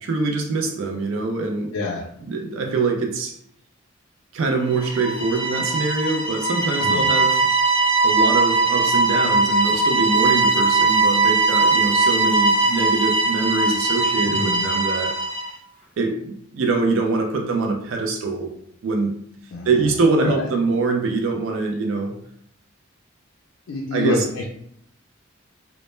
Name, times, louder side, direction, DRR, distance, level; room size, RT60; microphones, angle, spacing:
voice 1, 0.0-1.7 2.2-3.4 4.3-7.4 8.0-15.1 16.0-18.5 18.8-19.1 19.7-22.2 23.9-24.2, right 3 dB, 65° right, 2 dB, 0.4 m, -23 dB
voice 2, 1.7-2.0 6.8-7.0 14.3-14.6 19.5-19.7 20.2-20.4 23.7-24.4, left 2 dB, 70° left, -1 dB, 0.4 m, -26 dB
sound 1, 4.7-15.5, right 3 dB, 5° left, 0.4 m, -20 dB
2.0 x 2.0 x 3.0 m, 0.68 s
head